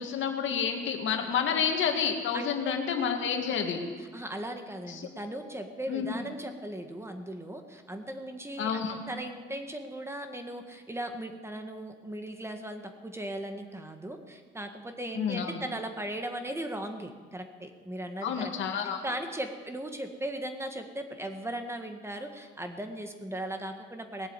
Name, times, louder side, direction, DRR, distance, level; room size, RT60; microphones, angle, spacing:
voice 1, 0.0-3.8 4.9-5.1 5.9-6.1 8.6-9.0 15.1-15.5 18.2-19.0, left 7 dB, 75° left, 4 dB, 2.0 m, -29 dB
voice 2, 2.3-2.8 4.0-18.5 18.8-24.3, right 1 dB, 15° right, 6 dB, 1.6 m, -38 dB
19.0 x 7.5 x 9.0 m, 1.5 s
cardioid pair, 90°, 20 cm